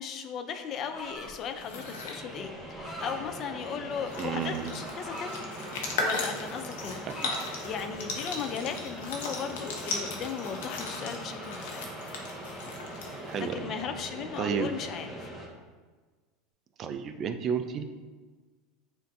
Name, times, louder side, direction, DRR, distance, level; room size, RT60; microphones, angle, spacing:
voice 1, 0.0-5.4 6.0-7.1 7.6-11.9 13.4-15.3, left 7 dB, 40° left, 7 dB, 0.4 m, -37 dB
sound 1, 0.7-15.5, right 1 dB, ahead, 0.9 m, -42 dB
sound 2, 0.9-1.5 2.5-3.2 4.1-5.4 5.9-6.2 6.5-7.5, equal, 25° left, 1.4 m, -43 dB
sound 3, 1.5-2.2 3.6-3.7 3.9-13.5, left 3 dB, 85° left, 0.8 m, -37 dB
voice 2, 4.2-4.7 7.1-7.3 13.2-13.7 14.4-14.7 16.8-17.8, right 7 dB, 40° right, 7 dB, 0.3 m, -32 dB
7.3 x 2.6 x 2.6 m, 1.4 s
supercardioid pair, 120°, 0 cm